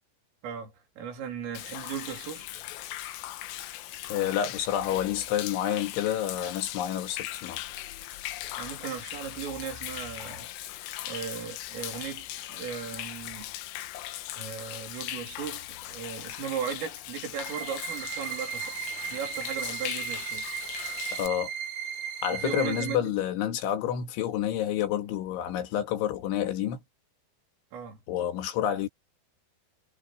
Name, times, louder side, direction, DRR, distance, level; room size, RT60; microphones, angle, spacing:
voice 1, 0.4-2.5 8.6-10.5 11.0-13.5 14.4-18.8 19.1-20.5 22.3-23.1 27.7-28.0, right 7 dB, 85° right, 6.6 m, -37 dB
Human voice / Rain / Stream, 1.6-21.3, left 14 dB, 90° left, 3.9 m, -39 dB
voice 2, 4.1-7.6 21.1-21.5 22.2-26.8 28.1-28.9, left 10 dB, 75° left, 4.2 m, -29 dB
sound 1, 17.3-23.0, right 8 dB, 60° right, 6.6 m, -36 dB
omnidirectional pair, 5.7 m